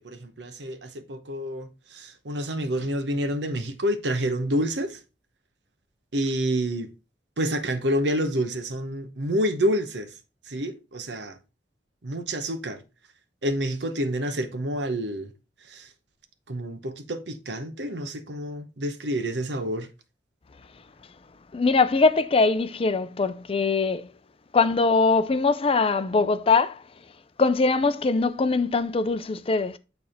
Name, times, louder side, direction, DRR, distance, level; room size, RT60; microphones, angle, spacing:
voice 1, 0.0-5.0 6.1-6.9 7.4-10.1 10.5-11.4 12.0-12.8 13.4-15.3 15.7-15.9 16.5-19.9, equal, 75° right, 0.9 m, -28 dB
voice 2, 21.5-24.1 24.5-26.8 27.4-29.8, left 4 dB, 35° left, 0.5 m, -22 dB
8.7 x 3.5 x 4.3 m
head